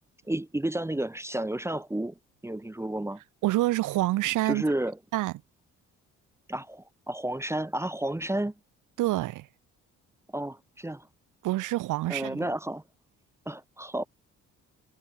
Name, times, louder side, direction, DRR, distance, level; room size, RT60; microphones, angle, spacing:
voice 1, 0.3-3.2 4.4-5.0 6.5-8.5 10.3-11.1 12.1-12.8 13.4-14.1, right 1 dB, 10° right, 1.4 m, -31 dB
voice 2, 3.4-4.6 5.1-5.3 9.0-9.5 11.4-12.4, right 17 dB, 85° right, 0.9 m, -27 dB
cardioid pair, 90°, 30 cm